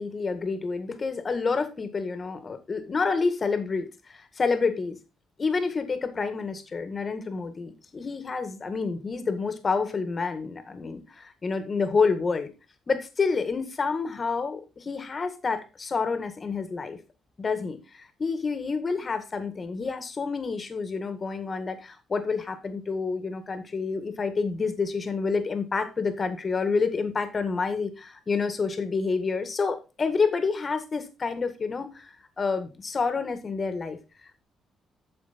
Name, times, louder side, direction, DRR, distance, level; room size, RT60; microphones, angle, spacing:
voice 1, 0.0-5.0 5.4-12.5 12.9-17.0 17.4-34.0, left 4 dB, 35° left, 1.9 m, -28 dB
8.9 x 6.9 x 4.4 m
cardioid pair, 90°, 0 cm